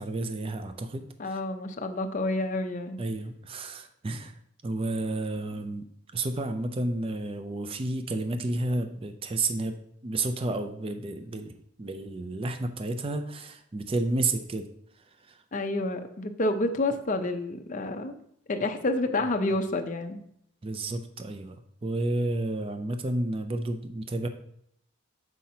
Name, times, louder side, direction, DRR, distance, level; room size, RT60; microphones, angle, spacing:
voice 1, 0.0-1.4 3.0-4.4 4.6-5.8 6.1-9.8 10.0-14.7 14.9-15.4 20.6-24.3, right 2 dB, 25° right, 7 dB, 0.4 m, -31 dB
voice 2, 1.2-3.0 15.5-20.2, left 2 dB, 35° left, 6 dB, 0.5 m, -29 dB
7.5 x 5.7 x 2.8 m, 0.70 s
head